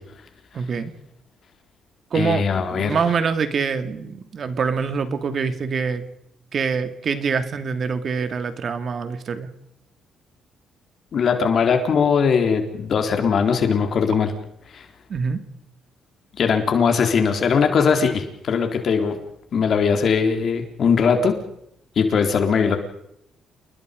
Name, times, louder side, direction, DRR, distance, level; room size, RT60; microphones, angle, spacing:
voice 1, 0.5-0.9 2.1-6.1 6.5-9.5 15.1-15.4, right 5 dB, 50° right, 10 dB, 2.5 m, -25 dB
voice 2, 2.1-3.0 11.1-14.3 14.7-14.9 16.4-19.2 19.5-21.3 22.0-22.8, left 6 dB, 55° left, 5 dB, 3.9 m, -20 dB
29.0 x 20.5 x 5.3 m, 0.77 s
cardioid pair, 90°, 0 cm